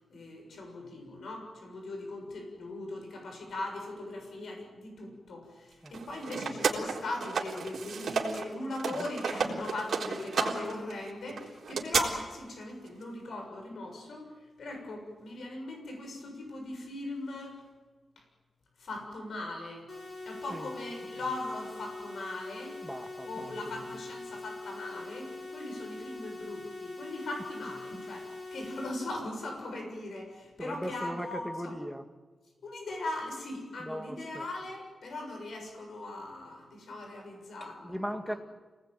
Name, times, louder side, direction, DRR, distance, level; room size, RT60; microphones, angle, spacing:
voice 1, 0.1-17.6 18.8-19.9 20.3-22.8 23.2-31.7 32.6-38.4, left 2 dB, 75° left, 2 dB, 7.1 m, -39 dB
sound 1, 5.9-8.5 8.7-12.0, right 5 dB, 75° right, 3.8 m, -32 dB
sound 2, 19.9-28.9, left 2 dB, 35° left, 4.2 m, -43 dB
voice 2, 22.8-23.5 30.6-32.0 33.8-34.4 37.6-38.4, equal, ahead, 6 dB, 1.9 m, -38 dB
27.5 x 19.5 x 9.2 m, 1.3 s
wide cardioid pair, 160°, 0 cm